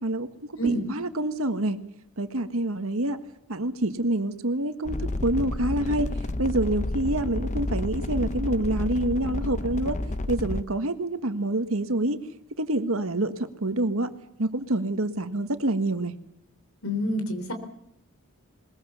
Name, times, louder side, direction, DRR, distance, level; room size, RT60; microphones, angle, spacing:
voice 1, 0.0-1.8 2.2-3.2 3.5-6.1 6.4-10.0 10.3-12.2 12.6-14.1 14.4-16.2, right 1 dB, 70° right, 9 dB, 1.7 m, -27 dB
sound 1, 4.8-10.6, left 2 dB, 35° left, 0.8 m, -30 dB
voice 2, 16.8-17.5, right 1 dB, 75° left, 8 dB, 3.6 m, -27 dB
21.5 x 20.5 x 7.0 m, 0.75 s
head